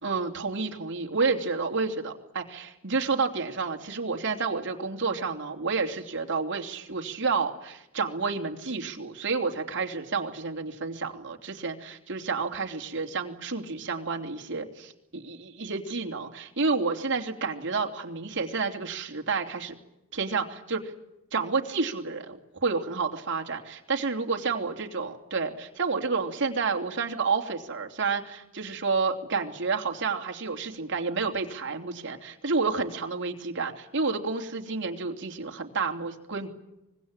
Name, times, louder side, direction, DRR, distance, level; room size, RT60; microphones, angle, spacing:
voice 1, 0.0-19.7 20.1-20.9 21.3-36.5, right 4 dB, 55° right, 4 dB, 3.0 m, -30 dB
25.0 x 21.5 x 9.0 m, 0.90 s
head